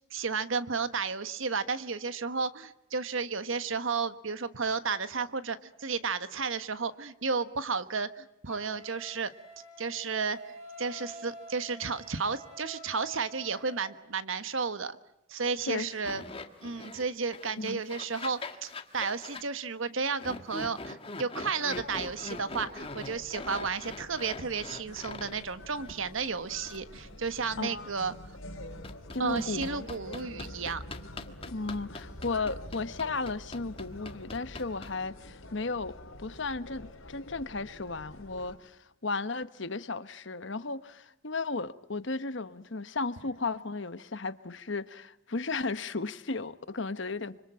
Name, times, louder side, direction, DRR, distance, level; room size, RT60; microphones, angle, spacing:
voice 1, 0.1-9.3 9.8-15.0 15.3-16.2 16.6-28.1 29.2-30.8, right 5 dB, 70° right, 1.3 m, -33 dB
Wind instrument woodwind instrument, 8.5-13.9, right 1 dB, 30° right, 7.5 m, -48 dB
sound 1, 16.0-17.1 17.3-19.4 20.2-25.4 25.8-25.9 26.7-26.8 28.8-35.1, left 3 dB, 25° left, 1.6 m, -42 dB
sound 2, 21.7-38.6, left 1 dB, 80° left, 3.8 m, -47 dB
voice 2, 27.6-27.9 29.1-29.9 31.4-47.5, left 3 dB, 60° left, 1.1 m, -35 dB
25.5 x 25.5 x 8.8 m
head